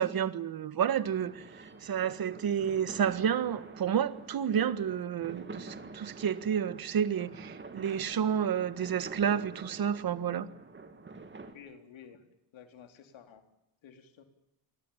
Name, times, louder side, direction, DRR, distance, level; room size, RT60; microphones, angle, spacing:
voice 1, 0.0-1.4 1.8-10.5, right 8 dB, 50° right, 1.6 m, -30 dB
sound 1, 1.2-11.5, right 3 dB, 25° right, 3.0 m, -47 dB
voice 2, 11.5-12.2 12.5-13.5 13.8-14.2, left 7 dB, 75° left, 4.0 m, -52 dB
29.5 x 23.5 x 7.3 m
cardioid pair, 155°, 46 cm